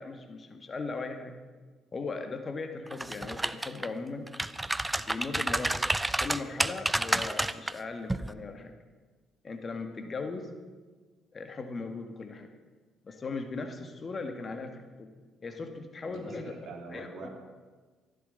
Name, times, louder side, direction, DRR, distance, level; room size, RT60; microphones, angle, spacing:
voice 1, 0.0-1.3 1.9-4.3 5.0-5.9 6.2-8.7 9.4-10.5 11.3-12.5 13.0-15.1 15.4-16.6 16.9-17.3, left 3 dB, 40° left, 6 dB, 1.8 m, -38 dB
sound 1, 2.9-3.9 4.3-7.7 8.1-8.3, right 1 dB, 15° right, 0.7 m, -29 dB
voice 2, 16.0-17.3, right 3 dB, 60° right, 0 dB, 3.5 m, -44 dB
14.0 x 11.5 x 6.7 m, 1.4 s
hypercardioid pair, 45°, 0 cm